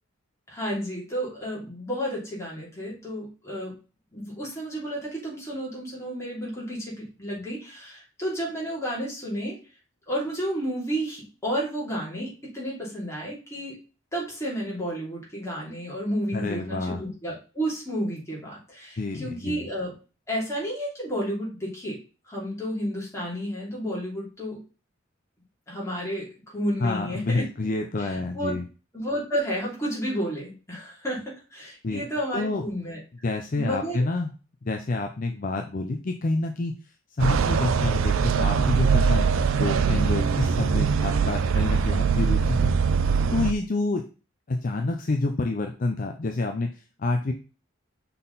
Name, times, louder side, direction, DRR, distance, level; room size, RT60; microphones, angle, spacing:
voice 1, 0.5-3.7 4.1-9.5 10.1-13.8 14.1-19.9 20.3-22.0 22.3-24.6 25.7-27.4 28.0-28.6 28.9-33.0 33.5-34.0 39.9-40.0, equal, 15° left, -5 dB, 3.0 m, -31 dB
voice 2, 16.3-17.0 19.0-19.7 26.8-28.6 31.8-32.1 32.3-32.6 33.2-34.3 34.6-36.7 37.2-42.7 43.3-44.0 44.5-47.3, left 2 dB, 40° left, 5 dB, 0.5 m, -28 dB
sound 1, 37.2-43.5, right 6 dB, 75° right, 0.4 m, -22 dB
5.7 x 4.2 x 4.0 m, 0.34 s
head